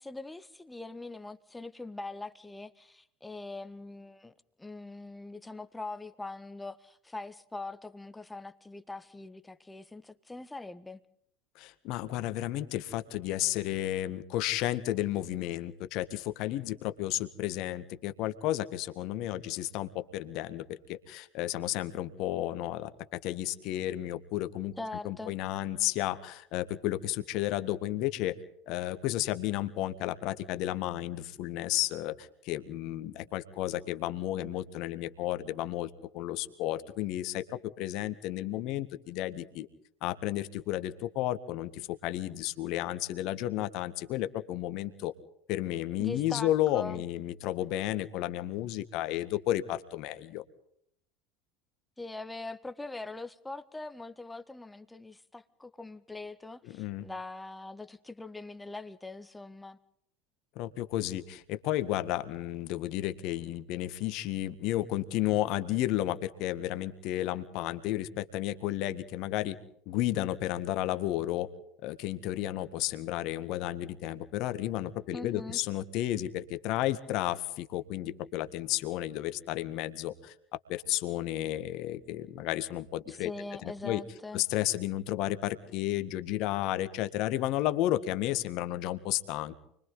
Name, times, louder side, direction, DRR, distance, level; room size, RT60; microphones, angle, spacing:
voice 1, 0.0-4.3 4.6-11.0 24.8-25.4 46.0-47.0 52.0-59.8 75.1-75.6 83.1-84.4, left 2 dB, 10° left, 1.5 m, -42 dB
voice 2, 11.6-24.7 25.0-28.4 28.7-39.7 40.0-45.1 45.5-50.4 56.6-57.1 60.6-69.6 69.9-71.5 71.8-80.3 80.7-83.3 83.6-84.0 84.3-89.6, left 14 dB, 55° left, 1.8 m, -32 dB
29.5 x 23.5 x 3.9 m
figure-of-eight pair, 75°, 0 cm